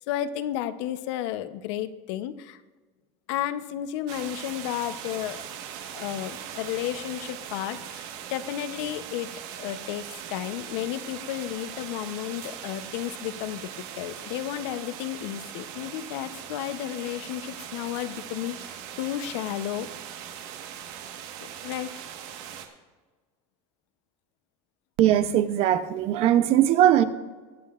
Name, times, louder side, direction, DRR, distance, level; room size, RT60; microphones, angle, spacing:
voice 1, 0.0-2.6 3.3-5.4 5.9-9.3 9.6-10.0 10.3-13.6 14.0-19.9 21.6-22.0, left 12 dB, 85° left, 12 dB, 0.7 m, -32 dB
sound 1, 4.1-22.7, right 9 dB, 75° right, 1.3 m, -40 dB
voice 2, 25.0-27.0, right 11 dB, 45° right, 12 dB, 0.6 m, -20 dB
23.0 x 8.6 x 2.4 m, 1.3 s
cardioid pair, 180°, 14 cm